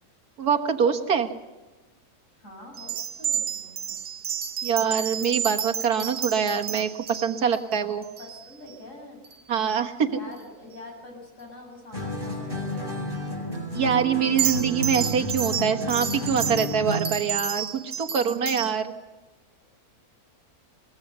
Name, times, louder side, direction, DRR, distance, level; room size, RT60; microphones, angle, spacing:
voice 1, 0.4-1.3 4.6-8.0 9.5-10.2 13.7-18.8, right 7 dB, 90° right, 4 dB, 2.0 m, -24 dB
voice 2, 2.4-4.0 8.2-9.2 10.0-13.2 18.1-19.0, left 1 dB, 55° left, 1 dB, 7.2 m, -45 dB
sound 1, 2.7-8.8 9.2-9.4 9.7-9.9 14.3-18.8, right 8 dB, 55° right, 1.3 m, -31 dB
sound 2, 11.9-17.3, left 1 dB, 35° right, 5.5 m, -31 dB
22.5 x 18.5 x 6.8 m, 1.2 s
omnidirectional pair, 1.6 m